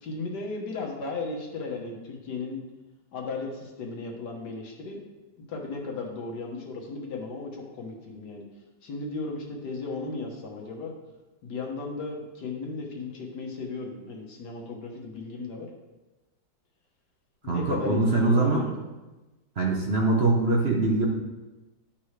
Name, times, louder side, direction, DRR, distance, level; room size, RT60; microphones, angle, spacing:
voice 1, 0.0-2.6 3.1-5.0 5.5-8.4 8.8-10.9 11.4-15.7 17.4-18.8, left 3 dB, 65° left, 0 dB, 1.8 m, -35 dB
voice 2, 17.5-18.6 19.6-21.1, right 2 dB, 45° right, -1 dB, 0.9 m, -23 dB
11.0 x 5.7 x 3.2 m, 1.1 s
omnidirectional pair, 2.0 m